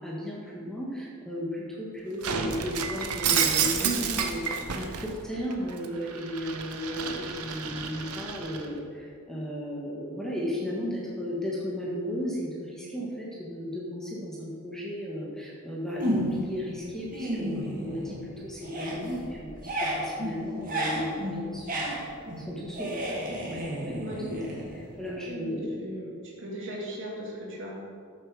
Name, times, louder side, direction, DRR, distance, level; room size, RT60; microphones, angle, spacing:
voice 1, 0.0-24.0 24.3-24.4 24.7-25.9, left 1 dB, ahead, -5 dB, 1.6 m, -35 dB
Shatter, 2.2-5.1 5.5-8.7, right 7 dB, 85° right, 1.0 m, -30 dB
sound 1, 16.0-16.6 16.9-18.3 18.6-25.1, equal, 40° right, 2.3 m, -32 dB
voice 2, 25.2-27.7, right 1 dB, 55° right, -4 dB, 3.1 m, -39 dB
13.0 x 7.8 x 4.9 m, 2.3 s
head